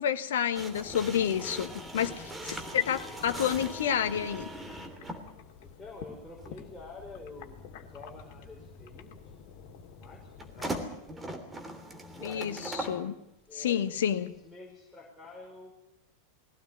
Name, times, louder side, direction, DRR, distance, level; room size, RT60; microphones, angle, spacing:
voice 1, 0.0-4.5 12.2-13.1 13.5-14.3, left 9 dB, 65° left, 1.2 m, -29 dB
sound 1, 0.6-5.3 6.4-6.6 10.4-13.0, right 1 dB, 15° right, 3.1 m, -40 dB
sound 2, 0.7-10.9, left 6 dB, 50° left, 2.5 m, -50 dB
voice 2, 5.6-9.5 9.9-11.6 12.1-13.0 13.5-15.7, left 2 dB, 5° left, 5.3 m, -49 dB
20.5 x 17.5 x 9.7 m
figure-of-eight pair, 90°, 0 cm